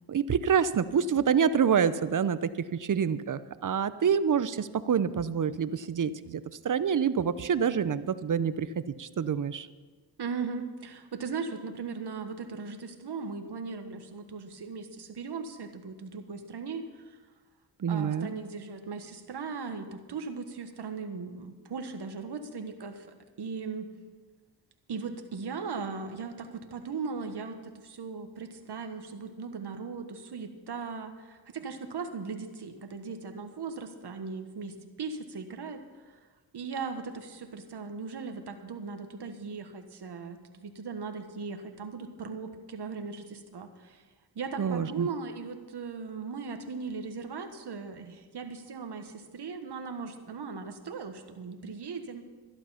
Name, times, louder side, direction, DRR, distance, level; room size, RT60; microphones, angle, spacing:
voice 1, 0.1-2.5 2.8-9.7 17.8-18.3 44.6-45.1, right 7 dB, 45° right, 14 dB, 0.7 m, -27 dB
voice 2, 10.2-17.2 17.9-23.1 23.4-23.9 24.9-35.8 36.1-36.2 36.5-44.0 44.3-52.2, right 5 dB, 65° right, 6 dB, 1.4 m, -38 dB
12.0 x 11.5 x 5.7 m, 1.4 s
cardioid pair, 70°, 44 cm